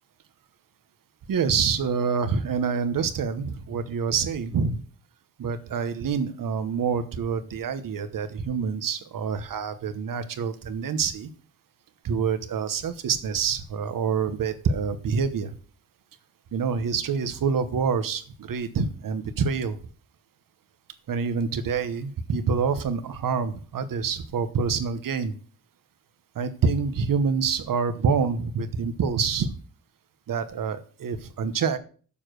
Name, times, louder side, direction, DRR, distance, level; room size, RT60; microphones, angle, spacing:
voice 1, 1.3-4.8 5.4-11.3 12.0-15.5 16.5-19.8 21.1-25.3 26.3-29.5 30.3-31.8, right 5 dB, 60° right, 11 dB, 1.0 m, -26 dB
7.2 x 6.7 x 6.3 m, 0.41 s
wide cardioid pair, 165°, 37 cm